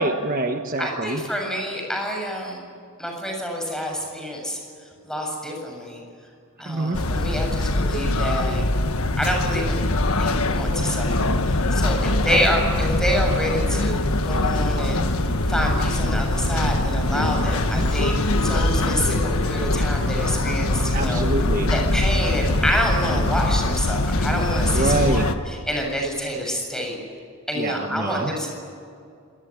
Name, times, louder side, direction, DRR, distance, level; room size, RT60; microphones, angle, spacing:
voice 1, 0.0-1.2 6.6-7.0 12.3-12.4 17.7-17.9 20.9-21.8 23.1-23.5 24.7-25.3 27.6-28.3, right 2 dB, 40° right, 5 dB, 1.3 m, -25 dB
voice 2, 0.8-2.6 3.0-4.6 5.0-6.0 6.6-8.6 9.2-9.8 10.2-15.0 15.5-21.3 21.7-27.0 27.5-28.6, equal, 5° left, 1 dB, 7.4 m, -27 dB
sound 1, 6.9-25.4, left 2 dB, 85° left, 1.5 m, -22 dB
26.5 x 20.0 x 10.0 m, 2.3 s
head